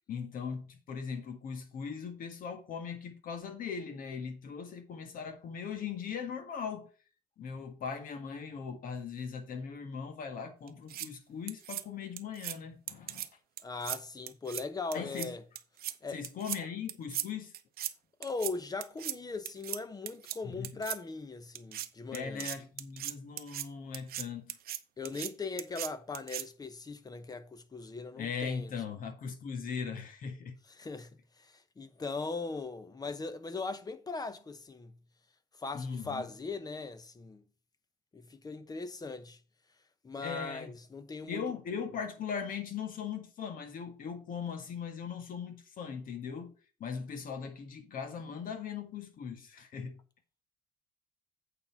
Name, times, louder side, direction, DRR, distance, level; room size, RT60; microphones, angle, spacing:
voice 1, 0.1-6.9 7.4-13.3 14.9-15.3 16.1-17.5 20.4-20.7 22.1-24.6 28.1-30.6 35.7-36.2 40.2-40.7 41.3-46.5 46.8-50.0, left 6 dB, 55° left, 1.8 m, -39 dB
sound 1, 10.7-11.1 11.5-11.8 12.2-12.5 12.9-13.3 13.6-14.0 14.3-14.6 14.9-15.3 15.5-15.9 16.2-16.6 16.9-17.2 17.5-17.9 18.2-18.5 18.8-19.1 19.4-19.8 20.1-20.4 20.6-21.0 21.5-21.9 22.1-23.6 23.9-24.2 24.5-24.8 25.0-25.3 25.6-25.9 26.1-26.4, right 12 dB, 65° right, 0.8 m, -38 dB
voice 2, 13.6-15.4 16.0-16.2 18.2-22.5 25.0-28.7 30.8-34.9 35.6-37.4 38.1-39.4 40.0-41.4, left 3 dB, 20° left, 0.9 m, -39 dB
8.7 x 4.3 x 5.7 m
cardioid pair, 110°, 17 cm